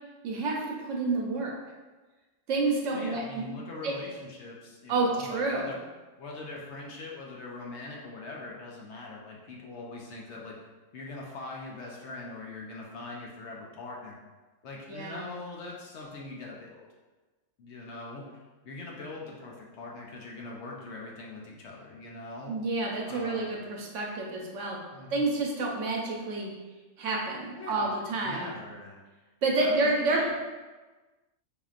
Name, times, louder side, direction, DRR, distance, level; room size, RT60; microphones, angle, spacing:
voice 1, 0.2-1.5 2.5-3.4 3.8-3.9 4.9-5.6 14.9-15.2 22.5-24.8 25.1-26.5 27.0-28.5 29.4-30.3, right 3 dB, 70° right, -1 dB, 1.0 m, -29 dB
voice 2, 2.9-5.8 6.2-10.6 10.9-14.2 14.6-16.9 17.6-22.6 23.1-23.5 24.9-25.3 27.5-29.0 29.6-30.3, left 2 dB, 65° left, -2 dB, 0.9 m, -42 dB
5.0 x 2.9 x 2.4 m, 1.2 s
omnidirectional pair, 1.4 m